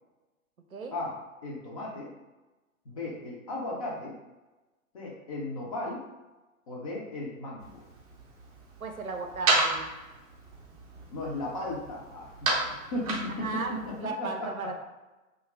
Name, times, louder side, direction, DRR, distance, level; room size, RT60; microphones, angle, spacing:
voice 1, 1.4-2.1 2.9-4.1 4.9-6.0 6.7-7.8 11.1-14.8, left 1 dB, 25° left, -3 dB, 0.5 m, -36 dB
sound 1, 7.6-14.0, right 2 dB, 30° right, 0.5 m, -33 dB
voice 2, 8.8-9.9 13.3-14.8, right 3 dB, 90° right, 3 dB, 0.6 m, -35 dB
2.7 x 2.5 x 3.0 m, 1.1 s
figure-of-eight pair, 115°, 42 cm